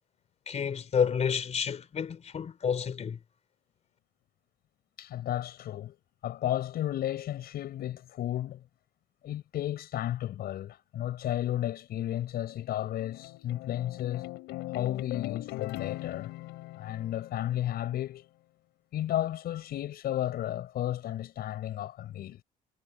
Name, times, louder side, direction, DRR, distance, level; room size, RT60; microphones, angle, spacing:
voice 1, 0.5-3.2, left 7 dB, 40° left, 3.9 m, -30 dB
voice 2, 5.0-6.0 6.2-8.6 9.2-14.3 14.7-16.3 16.8-18.3 18.9-22.4, left 12 dB, 65° left, 5.4 m, -33 dB
sound 1, 12.3-17.9, left 18 dB, 90° left, 5.9 m, -40 dB
cardioid pair, 110°, 17 cm